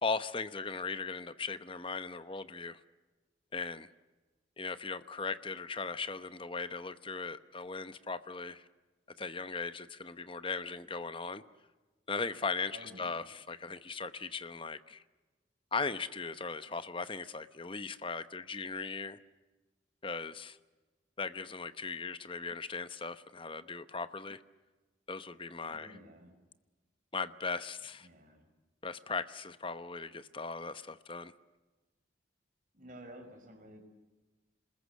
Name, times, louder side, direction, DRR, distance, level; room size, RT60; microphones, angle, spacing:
voice 1, 0.0-2.8 3.5-3.9 4.6-8.7 9.2-11.4 12.1-15.0 15.7-19.2 20.0-20.6 21.2-24.4 25.1-25.9 27.1-28.1 28.8-31.3, left 4 dB, 25° left, 12 dB, 0.9 m, -38 dB
voice 2, 12.7-13.3 25.7-26.4 28.0-28.5 32.7-33.8, right 1 dB, 45° right, 5 dB, 5.7 m, -52 dB
27.5 x 21.0 x 8.4 m, 1.2 s
head